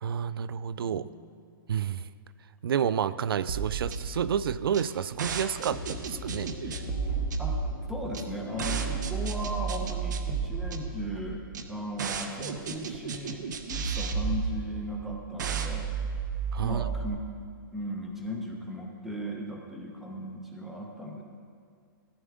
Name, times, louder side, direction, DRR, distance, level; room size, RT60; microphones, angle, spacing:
voice 1, 0.0-1.1 1.7-2.1 2.6-6.9 16.5-16.9, right 8 dB, 85° right, 16 dB, 0.4 m, -30 dB
voice 2, 0.8-1.3 7.4-7.6 7.9-15.9 16.6-17.3 17.7-21.2, equal, ahead, 0 dB, 0.8 m, -37 dB
sound 1, 3.5-17.1, right 6 dB, 55° right, 0.9 m, -33 dB
sound 2, 5.2-10.9, left 3 dB, 30° left, 1.8 m, -42 dB
14.0 x 10.5 x 3.6 m, 2.2 s
hypercardioid pair, 170°, 12 cm